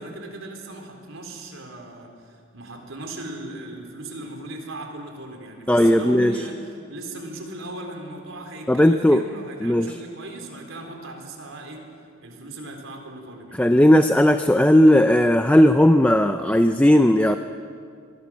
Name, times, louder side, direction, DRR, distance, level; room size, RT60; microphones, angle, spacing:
voice 1, 0.0-11.8 12.2-13.6, right 2 dB, 85° right, 3 dB, 3.9 m, -37 dB
voice 2, 5.7-6.3 8.7-9.2 9.6-9.9 13.6-17.4, left 1 dB, 5° left, 8 dB, 0.5 m, -16 dB
23.5 x 20.5 x 6.3 m, 2.3 s
head